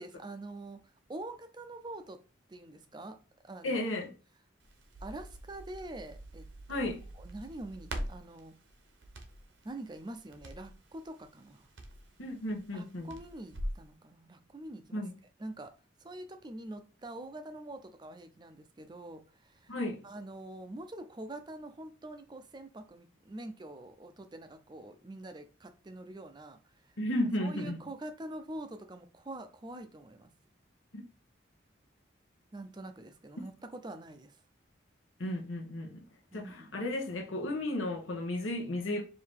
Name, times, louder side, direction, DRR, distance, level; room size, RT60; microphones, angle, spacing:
voice 1, 0.0-2.2 2.5-3.2 3.4-3.9 5.0-6.9 7.1-8.6 9.6-11.7 12.7-15.1 15.4-15.7 16.0-19.8 20.0-26.9 27.4-30.3 32.5-34.4 36.3-36.7, right 1 dB, 20° right, 0.4 m, -45 dB
voice 2, 3.6-4.1 6.7-7.0 12.2-13.1 14.9-15.1 19.7-20.0 27.0-27.8 30.9-31.0 35.2-36.1 36.3-39.0, left 1 dB, 90° left, 1.0 m, -34 dB
Crackle, 4.6-13.8, right 1 dB, 70° right, 0.8 m, -44 dB
4.6 x 2.7 x 3.6 m
head